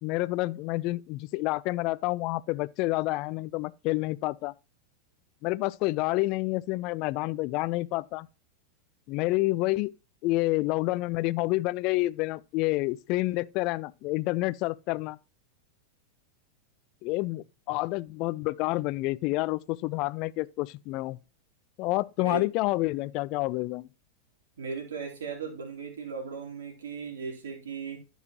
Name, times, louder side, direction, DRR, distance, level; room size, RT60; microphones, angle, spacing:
voice 1, 0.0-4.5 5.4-8.3 9.1-9.9 10.2-15.2 17.0-21.2 21.8-23.9, left 20 dB, 40° left, 0.4 m, -28 dB
voice 2, 24.6-28.0, right 5 dB, 65° right, 3.4 m, -37 dB
14.0 x 5.5 x 3.0 m
figure-of-eight pair, 90°, 0 cm